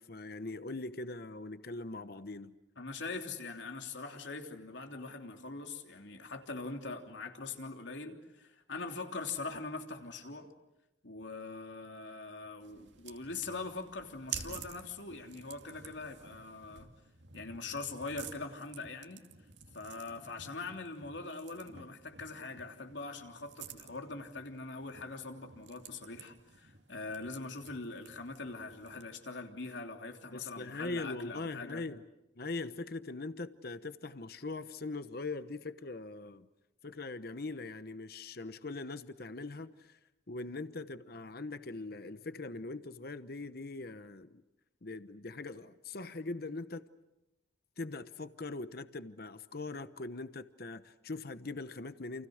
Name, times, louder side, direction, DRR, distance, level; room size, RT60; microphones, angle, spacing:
voice 1, 0.0-2.5 30.3-32.0 32.4-36.5 36.8-40.0 40.3-44.4 44.8-46.8 47.8-52.3, left 3 dB, 55° left, 12 dB, 1.0 m, -41 dB
voice 2, 2.8-10.5 11.0-16.9 17.3-19.2 19.7-31.8, left 3 dB, 80° left, 4 dB, 3.2 m, -42 dB
sound 1, 12.6-29.2, right 7 dB, 80° right, 2.6 m, -50 dB
29.5 x 29.0 x 6.5 m, 0.95 s
head